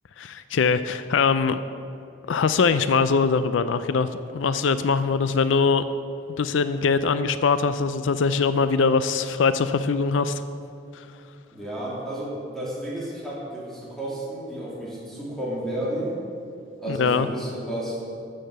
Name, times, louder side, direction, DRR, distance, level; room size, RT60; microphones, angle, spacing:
voice 1, 0.2-1.6 2.3-5.9 6.4-10.5 10.9-11.1 16.9-17.3, left 5 dB, 75° left, 12 dB, 0.4 m, -22 dB
voice 2, 11.5-16.1 16.8-18.0, right 1 dB, ahead, -7 dB, 3.1 m, -32 dB
14.0 x 6.6 x 6.7 m, 2.6 s
head